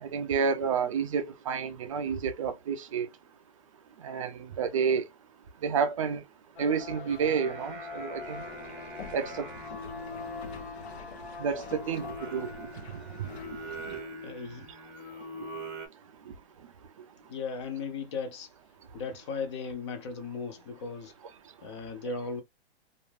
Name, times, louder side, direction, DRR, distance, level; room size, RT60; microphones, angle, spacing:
voice 1, 0.0-3.1 4.0-5.1 5.6-6.2 6.6-8.4 9.1-9.5 11.4-12.7 13.2-13.3, right 6 dB, 35° right, 0.4 m, -30 dB
sound 1, 6.6-14.1, left 4 dB, 50° left, 0.8 m, -44 dB
Singing, 7.1-15.9, equal, 15° right, 0.8 m, -43 dB
sound 2, 8.2-14.0, left 5 dB, 80° left, 0.8 m, -48 dB
voice 2, 14.2-14.7 17.3-18.5 18.9-21.1 21.6-22.4, left 4 dB, 30° left, 0.5 m, -36 dB
2.4 x 2.1 x 3.2 m
hypercardioid pair, 150°, 32 cm